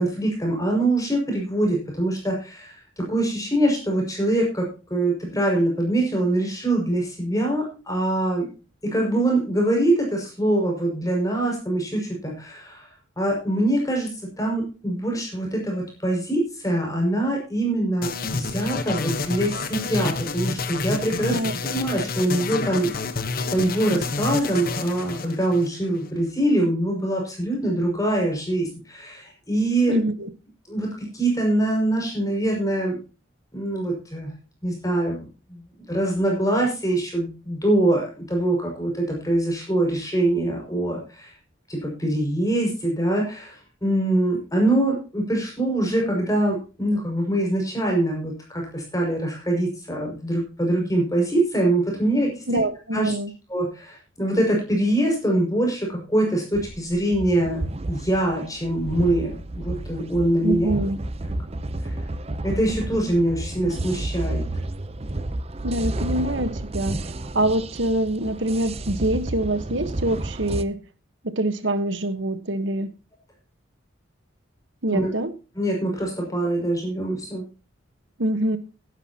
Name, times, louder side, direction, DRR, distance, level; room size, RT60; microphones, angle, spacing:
voice 1, 0.0-8.5 8.8-12.9 13.2-14.1 14.4-21.4 21.6-22.9 23.5-30.0 30.7-33.0 33.5-34.3 34.6-41.3 41.7-43.5 43.8-52.6 52.9-53.1 53.5-57.6 57.9-60.7 61.8-61.9 62.4-64.4 74.9-75.1 75.6-77.4, right 1 dB, 15° left, 0 dB, 6.1 m, -24 dB
sound 1, 18.0-26.1, left 3 dB, 45° left, 1.2 m, -29 dB
voice 2, 21.2-21.5 29.9-30.3 52.5-53.3 60.4-61.0 65.6-70.8 71.2-72.9 74.8-75.3 78.2-78.6, right 1 dB, 65° right, 11 dB, 1.3 m, -25 dB
sound 2, 56.5-70.6, right 1 dB, 30° right, 0.7 m, -31 dB
17.0 x 11.0 x 2.9 m, 0.33 s
head